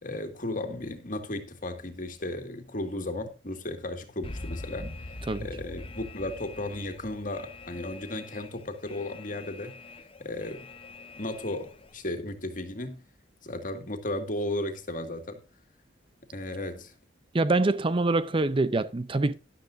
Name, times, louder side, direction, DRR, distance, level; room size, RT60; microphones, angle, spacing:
voice 1, 0.0-4.9 5.4-9.7 10.2-10.6 11.2-13.0 13.4-15.4 16.3-16.9, left 1 dB, 45° left, 2.0 m, -35 dB
Alarm, 4.2-11.9, left 2 dB, 30° left, 0.8 m, -43 dB
voice 2, 17.3-19.3, right 2 dB, 30° right, 0.5 m, -25 dB
13.0 x 11.5 x 2.6 m
head